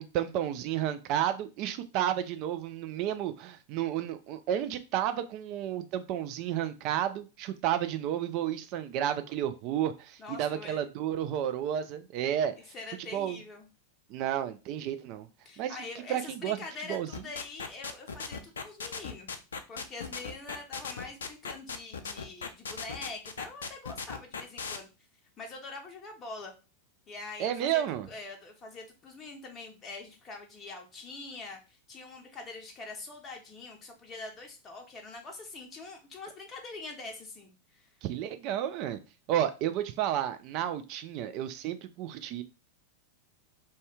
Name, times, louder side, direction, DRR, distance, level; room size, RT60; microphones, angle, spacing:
voice 1, 0.0-12.5 13.1-13.4 14.1-15.3 15.6-15.8 16.1-16.6 16.9-17.1 27.4-28.1 38.0-39.0 39.3-42.4, right 10 dB, 40° right, 0.3 m, -31 dB
voice 2, 10.2-10.9 12.7-13.7 15.4-19.3 19.7-24.9 25.4-26.5 27.1-37.9, left 3 dB, 25° left, 0.6 m, -44 dB
sound 1, 17.1-24.8, left 5 dB, 70° left, 0.3 m, -37 dB
2.7 x 2.2 x 3.3 m
figure-of-eight pair, 90°, 0 cm